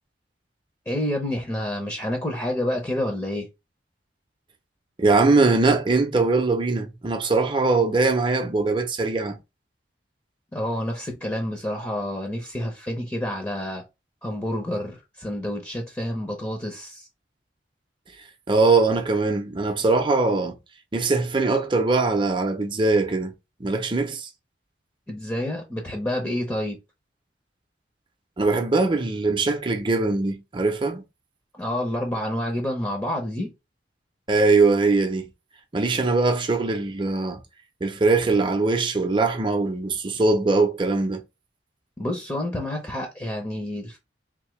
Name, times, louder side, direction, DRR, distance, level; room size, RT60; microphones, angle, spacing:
voice 1, 0.9-3.5 10.5-13.8 14.2-17.1 25.1-26.8 31.6-33.5 42.0-44.0, left 1 dB, 15° left, 0.8 m, -28 dB
voice 2, 5.0-9.4 18.5-20.6 20.9-23.3 23.6-24.3 28.4-31.0 34.3-35.3 35.7-37.4 37.8-41.2, right 3 dB, 25° right, 0.7 m, -21 dB
3.6 x 2.8 x 3.1 m
head